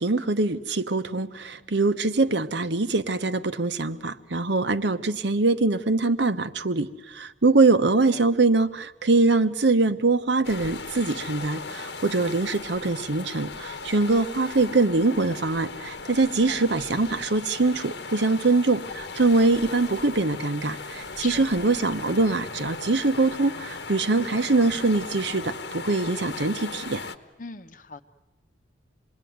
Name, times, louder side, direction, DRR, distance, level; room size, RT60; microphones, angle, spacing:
voice 1, 0.0-27.0, right 3 dB, 70° right, 9 dB, 1.0 m, -23 dB
sound 1, 10.4-27.2, left 4 dB, 65° left, 1.1 m, -37 dB
voice 2, 21.1-21.5 27.4-28.0, left 4 dB, 45° left, 10 dB, 0.9 m, -41 dB
27.5 x 20.5 x 9.4 m, 1.1 s
head